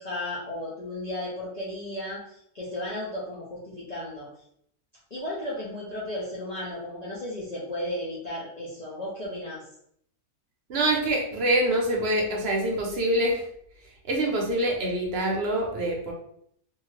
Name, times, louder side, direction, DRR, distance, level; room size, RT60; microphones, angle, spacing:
voice 1, 0.0-4.3 5.1-9.6, left 1 dB, 90° left, -7 dB, 0.3 m, -34 dB
voice 2, 10.7-13.4 14.1-16.1, right 1 dB, 55° right, -1 dB, 0.7 m, -25 dB
2.6 x 2.3 x 3.1 m, 0.70 s
omnidirectional pair, 1.6 m